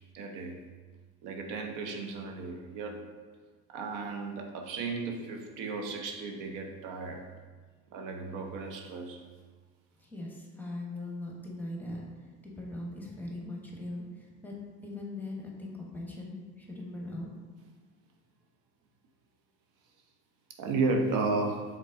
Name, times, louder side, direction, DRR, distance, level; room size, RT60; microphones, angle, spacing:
voice 1, 0.1-0.5 1.2-3.1 3.7-7.3 7.9-9.2 20.6-21.6, right 3 dB, 65° right, 3 dB, 0.7 m, -34 dB
voice 2, 10.0-14.5 14.8-17.3, left 2 dB, 5° left, -2 dB, 1.0 m, -40 dB
5.3 x 3.6 x 2.5 m, 1.5 s
hypercardioid pair, 85°, 34 cm